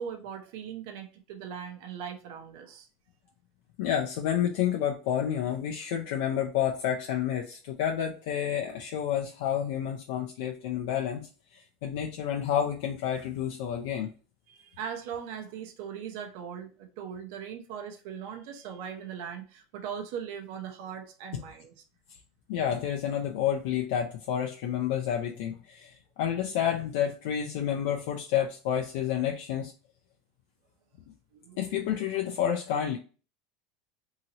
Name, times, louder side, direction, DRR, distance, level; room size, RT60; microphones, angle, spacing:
voice 1, 0.0-2.9 14.5-21.7 31.3-31.9, right 8 dB, 70° right, 5 dB, 0.6 m, -40 dB
voice 2, 3.8-14.1 22.5-29.7 31.6-33.0, left 9 dB, 70° left, 1 dB, 0.4 m, -30 dB
2.8 x 2.8 x 2.8 m, 0.37 s
supercardioid pair, 125°, 0 cm